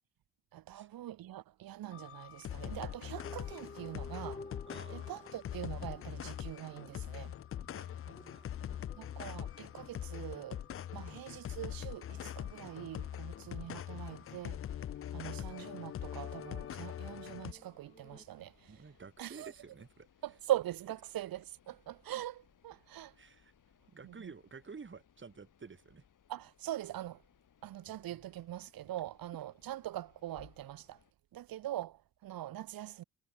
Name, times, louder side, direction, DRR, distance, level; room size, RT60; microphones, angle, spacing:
voice 1, 0.5-4.4 4.9-7.4 8.9-10.6 10.9-14.6 15.1-18.9 19.2-19.5 20.2-23.2 24.0-24.3 26.3-27.2 27.6-31.0 31.3-33.0, right 13 dB, 85° right, 1.9 m, -42 dB
sound 1, 1.8-2.6 3.1-7.7 8.1-11.5 12.1-14.7 16.1-18.2, left 2 dB, 20° left, 4.8 m, -55 dB
sound 2, 1.9-17.5, left 10 dB, 40° left, 0.4 m, -43 dB
voice 2, 4.7-5.1 7.6-8.9 11.0-11.2 13.5-13.6 18.7-20.1 23.2-23.5 23.9-26.0, right 5 dB, 35° right, 2.6 m, -52 dB
sound 3, 12.0-31.1, left 8 dB, 65° left, 5.7 m, -67 dB
cardioid pair, 80°, 34 cm